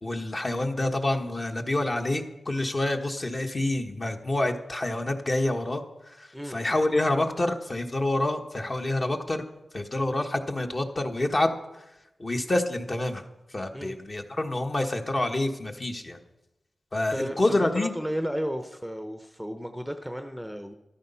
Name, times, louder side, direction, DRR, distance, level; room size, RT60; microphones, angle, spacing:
voice 1, 0.0-9.4 9.7-11.5 12.2-13.2 13.5-16.2 16.9-17.9, left 2 dB, 35° left, 3 dB, 1.4 m, -27 dB
voice 2, 17.1-20.7, equal, ahead, 7 dB, 0.8 m, -33 dB
14.0 x 12.0 x 5.6 m, 0.96 s
wide cardioid pair, 90°, 0 cm